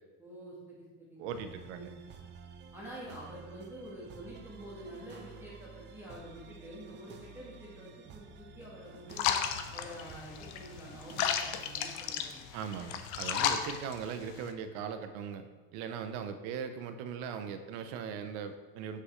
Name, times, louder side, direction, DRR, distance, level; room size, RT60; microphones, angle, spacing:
voice 1, 0.2-1.2 1.7-1.9 2.7-9.4 9.7-12.4, right 1 dB, 5° right, -6 dB, 1.5 m, -47 dB
voice 2, 1.2-1.9 12.5-19.0, right 7 dB, 90° right, 9 dB, 0.8 m, -39 dB
sound 1, 1.3-11.9, right 5 dB, 35° right, 0.6 m, -52 dB
sound 2, 9.1-14.5, left 9 dB, 70° left, 0.7 m, -34 dB
7.8 x 6.4 x 3.2 m, 1.3 s
cardioid pair, 170°, 33 cm